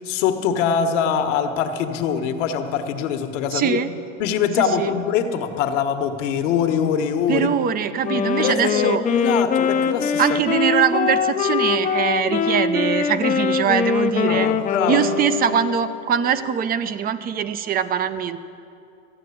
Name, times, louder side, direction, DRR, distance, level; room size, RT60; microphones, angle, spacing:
voice 1, 0.1-3.8 4.2-7.5 8.4-10.2 14.3-15.0, left 7 dB, 70° left, 6 dB, 1.4 m, -23 dB
voice 2, 3.5-3.9 4.5-4.9 7.3-9.1 10.2-14.5 14.9-18.4, right 8 dB, 25° right, 13 dB, 0.5 m, -22 dB
Wind instrument woodwind instrument, 8.0-16.1, left 6 dB, 20° left, 0.6 m, -22 dB
13.5 x 9.3 x 8.5 m, 2.7 s
supercardioid pair, 130°, 38 cm